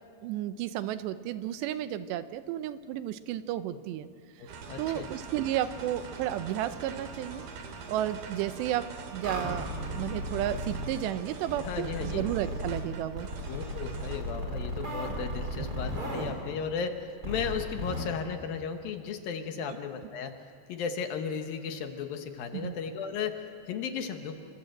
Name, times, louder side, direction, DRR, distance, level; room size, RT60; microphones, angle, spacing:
voice 1, 0.2-4.1 4.4-7.4 7.9-13.3 22.5-22.8, right 12 dB, 85° right, 12 dB, 3.0 m, -33 dB
voice 2, 4.4-5.1 11.6-12.3 13.5-20.4 20.7-24.3, left 6 dB, 65° left, 6 dB, 2.6 m, -35 dB
sound 1, 4.5-14.3, right 5 dB, 60° right, 3.9 m, -43 dB
sound 2, 9.2-10.9 11.5-12.8 13.2-16.3 17.2-18.0, equal, 20° right, 4.4 m, -35 dB
27.5 x 25.0 x 7.8 m, 2.3 s
omnidirectional pair, 4.9 m